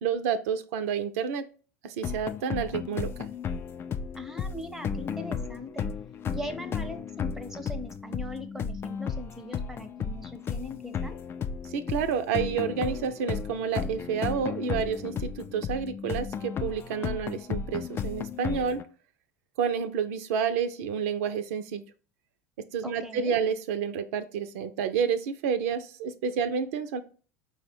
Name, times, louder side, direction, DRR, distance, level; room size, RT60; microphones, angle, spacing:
voice 1, 0.0-1.4 1.8-3.3 11.6-18.8 19.6-21.8 22.7-27.0, right 7 dB, 70° right, 9 dB, 0.4 m, -29 dB
sound 1, 2.0-18.8, left 6 dB, 30° left, 0.3 m, -34 dB
voice 2, 4.2-5.9 6.3-11.2 22.8-23.3, left 1 dB, 5° right, 10 dB, 0.7 m, -40 dB
4.6 x 2.1 x 4.3 m, 0.38 s
hypercardioid pair, 85°, 8 cm